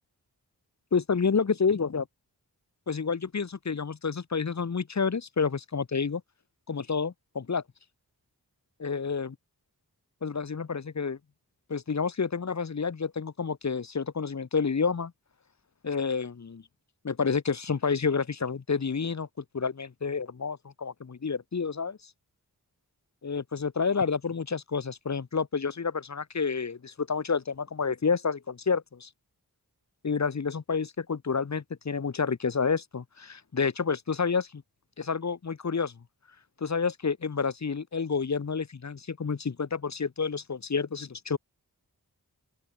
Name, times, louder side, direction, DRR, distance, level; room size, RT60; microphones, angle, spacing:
voice 1, 0.9-2.1 2.9-6.2 6.7-7.6 8.8-9.3 10.2-11.2 11.7-15.1 15.8-16.6 17.0-19.3 19.5-22.0 23.2-29.1 30.0-34.6 35.0-35.9 36.6-41.4, left 5 dB, 45° left, 0.8 m, -29 dB
open air
wide cardioid pair, 50°, 38 cm